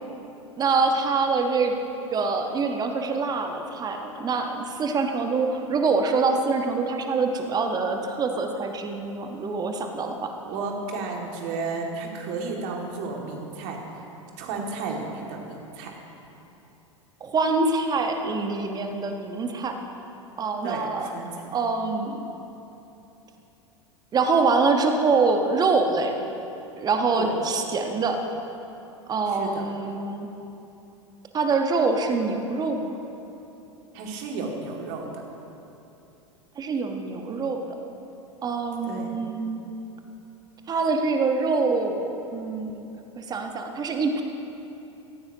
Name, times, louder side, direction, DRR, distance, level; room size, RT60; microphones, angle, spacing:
voice 1, 0.6-1.7 2.1-10.3 17.2-19.8 20.4-21.1 21.5-22.2 24.1-26.2 26.8-28.2 29.1-30.3 31.3-33.0 36.6-37.6 38.4-39.6 40.7-42.9 43.2-44.2, right 4 dB, 25° right, 4 dB, 1.3 m, -25 dB
voice 2, 10.5-13.8 14.4-15.9 20.6-21.5 27.1-27.3 29.3-29.6 33.9-35.2 38.9-39.1, right 4 dB, 50° right, 0 dB, 2.5 m, -33 dB
17.0 x 15.0 x 3.0 m, 3.0 s
figure-of-eight pair, 85°, 16 cm